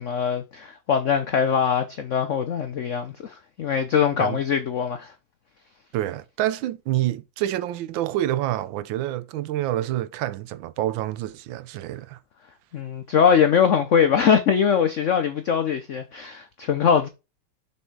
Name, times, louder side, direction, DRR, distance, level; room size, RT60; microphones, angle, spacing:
voice 1, 0.0-5.1 12.7-17.1, left 7 dB, 75° left, 0.7 m, -22 dB
voice 2, 5.9-12.2, right 14 dB, 80° right, 1.3 m, -27 dB
6.9 x 4.3 x 4.6 m
omnidirectional pair, 2.1 m